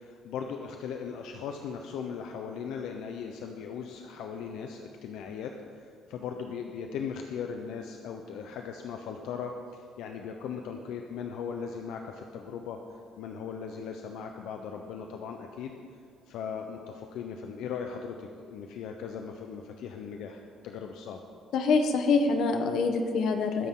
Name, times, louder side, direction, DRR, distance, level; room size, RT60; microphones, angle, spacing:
voice 1, 0.0-12.8 13.2-15.7 16.3-21.2, left 6 dB, 75° left, 4 dB, 0.9 m, -38 dB
voice 2, 21.5-23.7, left 4 dB, 55° left, 5 dB, 1.3 m, -25 dB
20.5 x 10.0 x 3.9 m, 2.4 s
cardioid pair, 180°, 0 cm